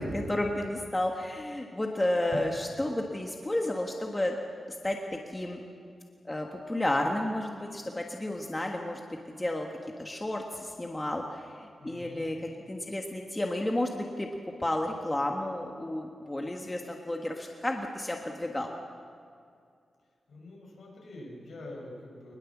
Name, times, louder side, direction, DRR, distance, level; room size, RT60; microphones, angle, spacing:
voice 1, 0.0-4.3 4.8-5.6 6.2-9.0 9.3-9.7 10.0-14.3 14.6-18.7, left 1 dB, 15° left, 1 dB, 1.5 m, -32 dB
voice 2, 11.8-12.3 20.3-22.3, left 2 dB, 65° left, -1 dB, 6.4 m, -44 dB
23.5 x 20.5 x 7.3 m, 2.3 s
wide cardioid pair, 165°, 0 cm